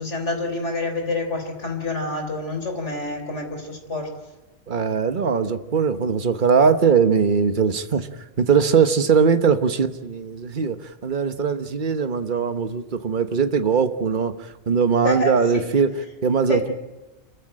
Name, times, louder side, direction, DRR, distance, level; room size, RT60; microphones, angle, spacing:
voice 1, 0.0-4.2 15.0-15.6 16.5-16.7, left 2 dB, 85° left, 5 dB, 3.9 m, -27 dB
voice 2, 4.7-8.1 8.4-14.3 14.7-15.9 16.2-16.6, right 6 dB, 45° right, 9 dB, 1.3 m, -20 dB
27.5 x 14.5 x 8.8 m, 1.1 s
omnidirectional pair, 1.2 m